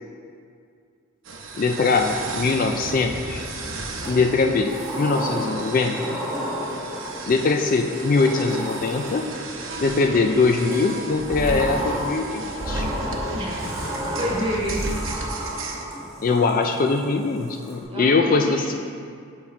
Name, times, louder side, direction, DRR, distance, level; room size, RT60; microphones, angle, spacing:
sound 1, 1.3-15.8, right 1 dB, 65° right, 0.8 m, -33 dB
voice 1, 1.5-3.5 4.1-6.1 7.2-9.2 9.8-12.9 16.2-18.7, left 4 dB, 40° left, 5 dB, 0.3 m, -22 dB
Sliding door, 1.7-3.1 4.0-9.6 10.7-17.8, right 1 dB, 5° right, 1.4 m, -33 dB
voice 2, 13.3-14.9 17.9-18.7, equal, 25° right, -5 dB, 1.4 m, -29 dB
6.5 x 5.8 x 4.3 m, 2.3 s
head